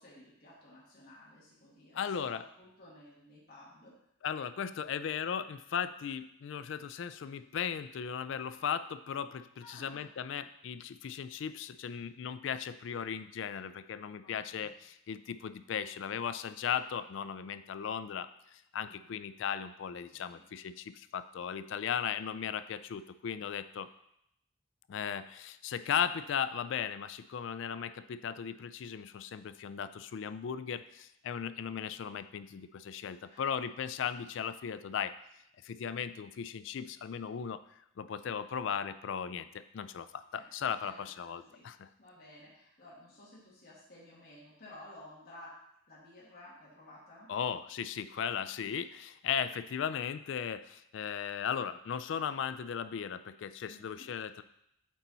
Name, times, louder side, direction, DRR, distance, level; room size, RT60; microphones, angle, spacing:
voice 1, 0.0-4.0 9.6-10.1 14.2-14.8 18.8-19.2 20.1-20.4 33.2-33.6 40.3-40.5 40.8-41.7 42.0-45.6 45.9-47.3 53.7-54.1, left 1 dB, 50° left, -7 dB, 1.8 m, -54 dB
voice 2, 1.9-2.4 4.2-23.9 24.9-35.1 35.6-37.6 38.0-41.9 47.3-54.4, left 7 dB, 65° left, 13 dB, 0.3 m, -37 dB
8.2 x 4.2 x 4.0 m, 0.76 s
head